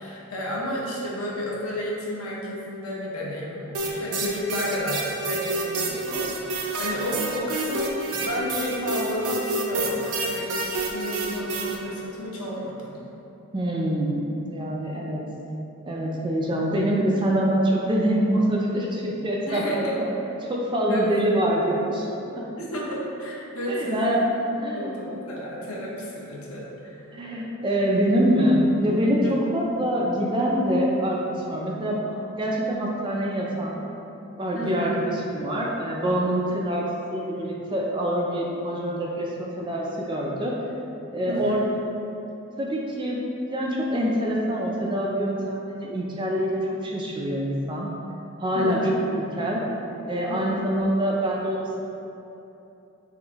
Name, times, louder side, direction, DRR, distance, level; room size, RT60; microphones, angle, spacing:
voice 1, 0.0-12.9 14.9-15.0 19.5-20.0 20.9-21.0 22.6-24.2 24.7-27.0 29.2-29.4 34.5-34.9 41.2-41.6 48.5-48.9 50.3-50.6, equal, 75° left, -4 dB, 0.7 m, -32 dB
sound 1, 3.7-11.8, right 2 dB, 90° right, 0.5 m, -29 dB
voice 2, 13.5-15.2 15.9-20.1 20.5-22.4 23.7-25.0 27.1-33.8 34.4-40.5 41.1-41.7 42.6-43.2 43.5-47.9 48.4-48.8 49.1-49.6 50.1-51.8, equal, 20° right, -3 dB, 0.3 m, -25 dB
3.6 x 2.6 x 3.5 m, 2.9 s
head